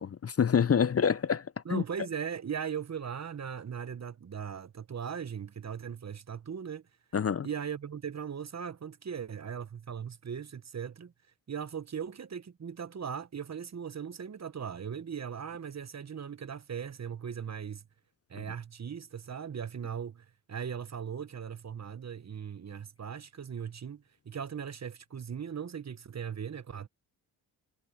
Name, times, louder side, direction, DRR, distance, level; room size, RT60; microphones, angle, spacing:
voice 1, 0.0-1.8 7.1-7.5, left 7 dB, 35° left, 0.7 m, -27 dB
voice 2, 1.6-6.8 7.4-11.1 11.5-17.8 18.3-26.9, right 7 dB, 35° right, 1.2 m, -39 dB
supercardioid pair, 55°, 44 cm